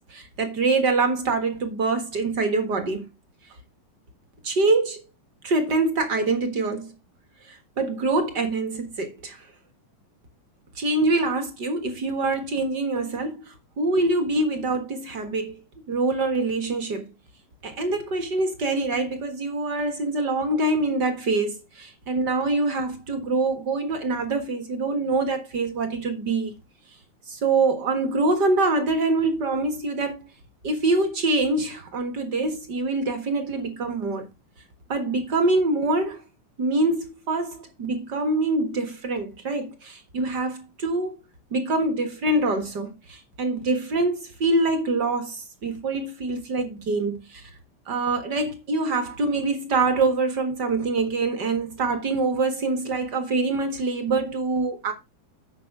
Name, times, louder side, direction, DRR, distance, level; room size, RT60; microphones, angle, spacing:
voice 1, 0.1-3.0 4.4-5.0 5.4-6.9 7.5-9.5 10.7-15.6 15.9-17.1 17.6-26.5 27.3-30.2 30.6-34.2 34.9-36.2 36.6-41.1 41.5-47.5 47.9-54.9, right 3 dB, 40° right, 1.6 m, -25 dB
9.1 x 5.8 x 4.8 m
omnidirectional pair, 3.6 m